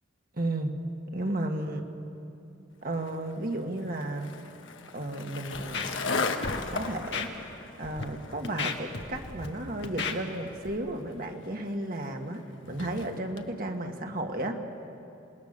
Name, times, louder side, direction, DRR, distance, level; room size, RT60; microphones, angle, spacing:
voice 1, 0.3-0.8 1.1-1.8 2.8-4.3 4.9-6.0 6.7-7.3 7.8-14.6, right 1 dB, 45° right, 3 dB, 1.8 m, -33 dB
Skateboard, 2.9-13.5, left 4 dB, 85° left, 1.4 m, -38 dB
Scratching (performance technique), 5.5-6.2 6.4-6.6 7.1-7.3 7.8-8.0 8.4-9.5 9.8-10.1 10.6-10.8, left 5 dB, 65° left, 1.6 m, -33 dB
27.5 x 20.5 x 6.7 m, 2.8 s
head